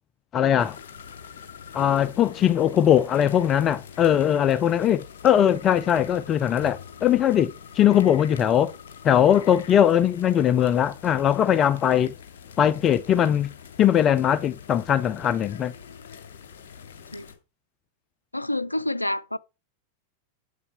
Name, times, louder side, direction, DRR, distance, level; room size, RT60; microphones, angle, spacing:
voice 1, 0.3-0.8 1.7-8.7 9.0-12.1 12.6-13.5 13.8-15.7, left 10 dB, 30° left, 0.6 m, -20 dB
sound 1, 0.6-17.4, left 7 dB, 60° left, 2.3 m, -44 dB
voice 2, 18.3-19.4, left 1 dB, 85° left, 0.5 m, -28 dB
8.4 x 8.3 x 6.0 m
figure-of-eight pair, 90°, 0 cm